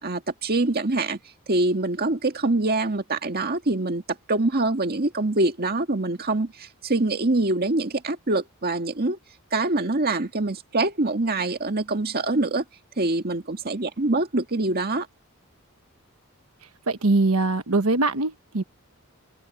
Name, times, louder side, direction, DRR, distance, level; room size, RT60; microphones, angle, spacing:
voice 1, 0.0-1.2 1.5-4.0 4.3-9.2 9.5-12.6 13.0-15.1, right 2 dB, 45° right, 1.9 m, -24 dB
voice 2, 16.9-18.6, right 2 dB, 75° right, 1.2 m, -22 dB
head